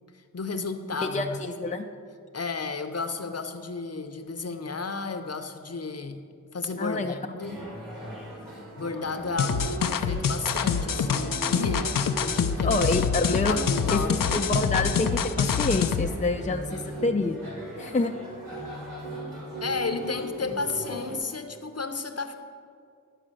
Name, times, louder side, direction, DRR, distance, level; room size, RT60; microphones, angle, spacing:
voice 1, 0.1-1.5 2.3-6.2 6.5-7.6 8.8-12.9 13.3-14.3 19.6-22.4, left 4 dB, 45° left, 7 dB, 0.8 m, -33 dB
voice 2, 1.0-1.8 6.8-7.1 12.6-13.6 13.9-17.4 17.8-18.1, left 2 dB, 20° left, 3 dB, 0.5 m, -27 dB
sound 1, 7.4-21.2, right 2 dB, 80° right, 3.0 m, -38 dB
sound 2, 9.4-16.1, left 6 dB, 75° left, 0.6 m, -26 dB
11.0 x 4.9 x 7.6 m, 2.3 s
wide cardioid pair, 55°, 33 cm